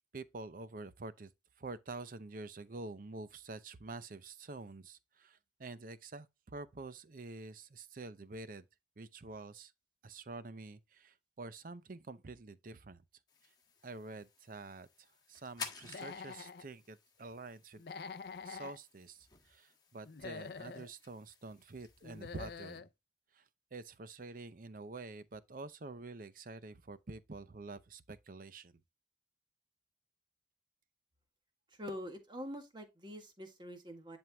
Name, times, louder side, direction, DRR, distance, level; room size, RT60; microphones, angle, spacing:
voice 1, 0.1-1.3 1.6-8.6 9.0-9.7 10.0-13.0 13.8-17.8 18.4-22.8 23.3-23.4 23.7-28.8, right 3 dB, 50° right, 0.6 m, -48 dB
sound 1, 13.3-22.8, left 5 dB, 25° left, 1.5 m, -53 dB
Human voice / Animal, 15.8-16.6 17.8-18.8 20.0-20.9 22.0-22.9, left 5 dB, 60° left, 0.5 m, -46 dB
voice 2, 31.7-34.2, equal, 25° right, 1.6 m, -45 dB
11.0 x 4.4 x 2.2 m
head